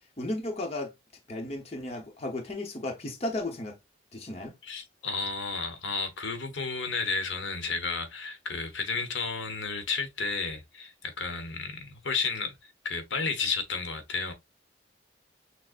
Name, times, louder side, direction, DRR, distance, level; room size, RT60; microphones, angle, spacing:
voice 1, 0.2-0.9 1.3-3.8 4.1-4.5, left 1 dB, 35° left, 0.8 m, -34 dB
voice 2, 4.6-12.6 12.8-14.3, left 4 dB, 85° left, 0.9 m, -32 dB
6.2 x 2.1 x 2.5 m
head